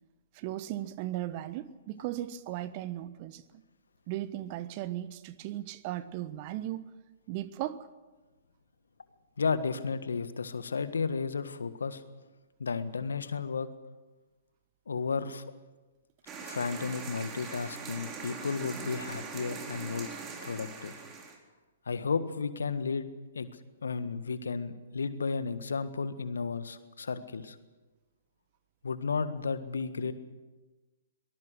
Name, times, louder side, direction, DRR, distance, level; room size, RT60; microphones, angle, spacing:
voice 1, 0.3-3.6 4.1-6.9 7.3-7.9, right 14 dB, 35° right, 1.2 m, -37 dB
voice 2, 9.4-12.0 12.6-13.7 14.9-15.4 16.4-20.1 20.4-20.9 21.8-23.1 23.3-23.5 23.8-27.6 28.8-30.1, left 5 dB, 70° left, 1.6 m, -33 dB
sound 1, 16.3-21.4, right 5 dB, 20° right, 3.8 m, -42 dB
23.5 x 19.0 x 6.5 m
figure-of-eight pair, 120°, 0 cm